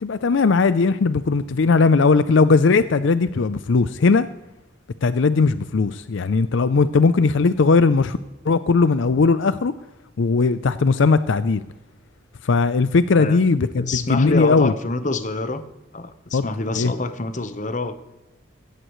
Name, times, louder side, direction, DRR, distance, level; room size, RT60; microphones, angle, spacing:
voice 1, 0.0-4.3 5.0-8.2 8.4-9.7 10.2-11.6 12.4-14.7 16.3-16.4 16.7-16.9, left 4 dB, 70° left, 13 dB, 0.5 m, -18 dB
voice 2, 13.7-15.6 15.9-17.9, left 2 dB, 40° left, 10 dB, 1.0 m, -26 dB
17.0 x 14.5 x 3.1 m, 0.99 s
head